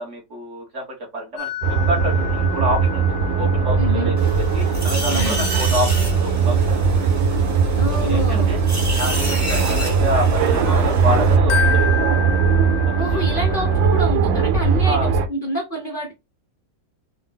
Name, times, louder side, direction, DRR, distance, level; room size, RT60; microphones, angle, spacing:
voice 1, 0.0-1.5 1.9-4.2 4.5-5.9 6.2-7.0 7.9-8.6 9.0-12.1 12.8-13.3 14.9-15.1, equal, 45° right, 1.4 m, -28 dB
sound 1, 1.4-10.8 11.2-14.0, left 9 dB, 80° left, 1.3 m, -31 dB
sound 2, 1.6-15.3, right 5 dB, 85° right, 1.3 m, -19 dB
voice 2, 3.8-4.1 5.1-5.5 7.8-8.5 13.0-16.1, right 1 dB, 50° left, 0.6 m, -27 dB
sound 3, 4.2-11.4, right 1 dB, 20° right, 0.5 m, -30 dB
3.9 x 2.2 x 3.7 m
omnidirectional pair, 2.0 m